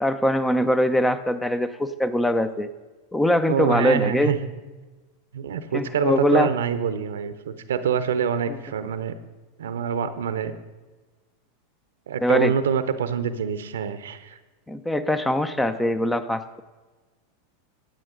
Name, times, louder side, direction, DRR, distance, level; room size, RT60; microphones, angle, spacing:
voice 1, 0.0-2.7 3.1-4.3 5.7-6.5 12.2-12.5 14.7-16.6, left 1 dB, 10° left, 12 dB, 0.6 m, -22 dB
voice 2, 3.5-4.4 5.3-9.1 9.6-10.5 12.1-14.4, right 7 dB, 75° right, 12 dB, 0.7 m, -26 dB
13.5 x 8.8 x 3.8 m, 1.3 s
hypercardioid pair, 95°, 0 cm